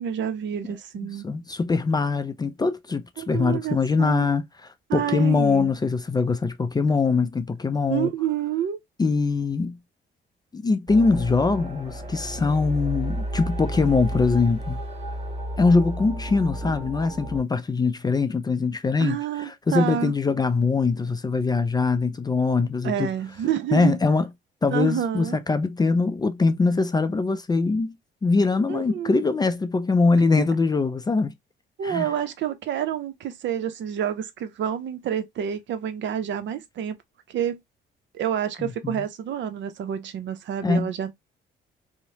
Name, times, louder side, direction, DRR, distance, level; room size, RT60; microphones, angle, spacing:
voice 1, 0.0-1.3 3.2-4.3 4.9-5.7 7.9-8.8 19.0-20.1 22.8-24.0 24.7-25.4 28.7-29.3 30.2-30.3 31.8-37.0 37.3-37.6 38.1-41.1, right 9 dB, 65° right, 0.6 m, -28 dB
voice 2, 1.2-8.1 9.0-9.8 10.5-14.8 15.6-23.1 23.7-24.3 24.6-28.0 28.2-31.3 31.8-32.1 38.6-39.0 40.6-40.9, left 4 dB, 20° left, 0.4 m, -22 dB
sound 1, 10.9-17.4, right 1 dB, 30° right, 1.4 m, -32 dB
2.9 x 2.1 x 2.7 m
cardioid pair, 90°, 20 cm